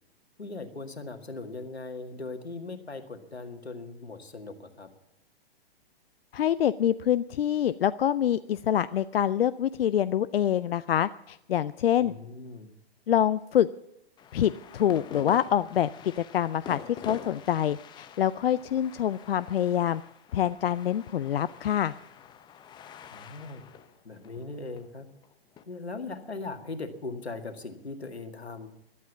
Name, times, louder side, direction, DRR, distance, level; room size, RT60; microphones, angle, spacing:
voice 1, 0.4-4.9 12.0-12.7 23.1-23.7 24.0-25.1 25.7-28.7, left 3 dB, 90° left, 7 dB, 2.0 m, -39 dB
voice 2, 6.3-12.1 13.1-13.7 14.3-20.0 20.3-21.9, left 10 dB, 65° left, 16 dB, 0.5 m, -26 dB
sound 1, 14.2-25.6, left 8 dB, 15° left, 0.7 m, -47 dB
14.0 x 12.0 x 7.2 m, 0.83 s
figure-of-eight pair, 120°, 31 cm